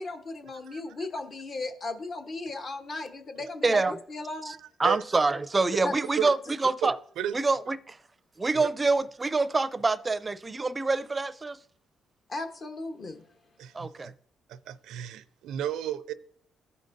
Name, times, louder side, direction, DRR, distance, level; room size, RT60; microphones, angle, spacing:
voice 1, 0.0-4.5 5.8-5.9 12.3-13.2, left 2 dB, 45° left, 1.0 m, -36 dB
voice 2, 0.6-1.1 4.5-5.0 6.2-6.3 6.8-7.4 8.5-8.7 13.6-14.1 14.5-16.1, right 10 dB, 85° right, 0.4 m, -34 dB
voice 3, 3.6-4.0 4.4-6.4 6.6-6.9 7.3-8.0 8.4-11.6 13.7-14.1, right 3 dB, 25° right, 0.5 m, -26 dB
14.0 x 5.2 x 2.6 m
cardioid pair, 90°, 0 cm